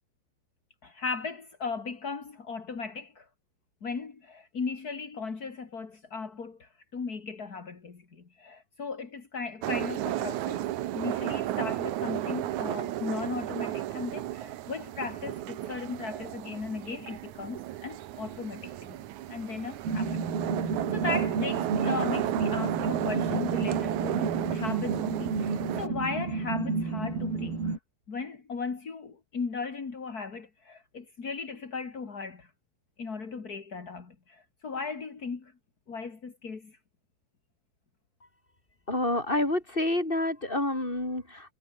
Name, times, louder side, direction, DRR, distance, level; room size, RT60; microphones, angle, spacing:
voice 1, 0.8-3.3 3.8-10.7 10.9-19.0 19.3-27.8 28.1-32.5 33.0-35.5 35.9-36.8, left 4 dB, 30° left, 1.9 m, -37 dB
sound 1, 9.6-25.9, right 14 dB, 90° right, 1.6 m, -33 dB
sound 2, 19.8-27.8, right 4 dB, 60° right, 9.1 m, -31 dB
voice 2, 38.9-41.5, left 1 dB, 10° left, 6.0 m, -28 dB
omnidirectional pair, 5.0 m